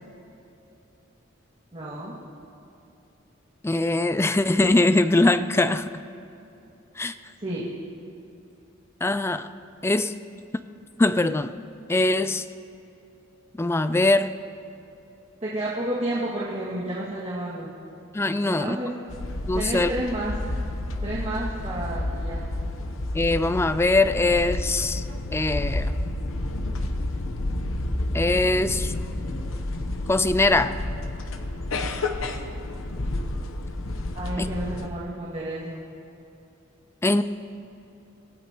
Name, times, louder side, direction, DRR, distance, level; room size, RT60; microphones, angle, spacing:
voice 1, 1.7-2.1 7.4-7.7 15.4-17.7 18.4-18.9 19.5-20.3 21.0-22.5 34.2-35.8, right 1 dB, 35° right, -9 dB, 2.2 m, -31 dB
voice 2, 3.6-5.9 7.0-7.1 9.0-9.5 9.8-10.1 11.0-11.5 11.9-12.5 13.6-14.4 18.1-18.8 19.5-19.9 23.1-25.0 25.3-25.9 28.1-28.9 30.1-30.7 34.4-34.5 37.0-37.2, left 2 dB, 10° left, 12 dB, 0.3 m, -22 dB
sound 1, 19.1-34.9, left 1 dB, 90° left, 1.0 m, -30 dB
26.0 x 16.5 x 3.0 m, 2.9 s
head